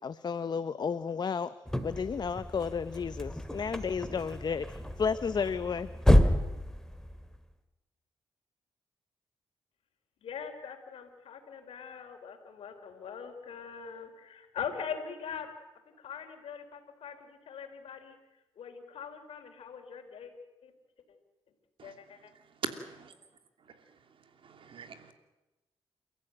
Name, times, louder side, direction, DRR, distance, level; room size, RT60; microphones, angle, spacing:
voice 1, 0.0-1.5 1.8-5.9, left 6 dB, 45° left, 13 dB, 0.8 m, -32 dB
sound 1, 1.7-7.5, left 1 dB, 5° left, 2.2 m, -29 dB
voice 2, 10.2-15.5 16.0-18.1 18.6-20.3 20.6-20.7 21.8-22.3, left 7 dB, 75° left, 4 dB, 3.6 m, -42 dB
voice 3, 22.6-23.1 24.6-25.1, right 6 dB, 65° right, 7 dB, 2.9 m, -39 dB
28.5 x 14.5 x 9.0 m, 1.0 s
cardioid pair, 75°, 10 cm